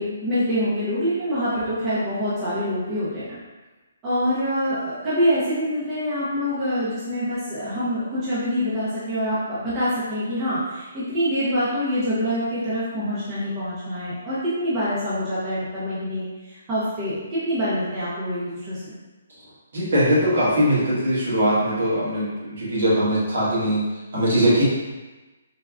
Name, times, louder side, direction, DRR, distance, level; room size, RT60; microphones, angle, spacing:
voice 1, 0.0-3.2 4.0-18.9, equal, 15° right, -11 dB, 0.5 m, -25 dB
voice 2, 19.7-23.8 24.1-24.6, equal, 60° right, -8 dB, 1.3 m, -21 dB
3.3 x 2.1 x 2.3 m, 1.2 s
hypercardioid pair, 170°, 0 cm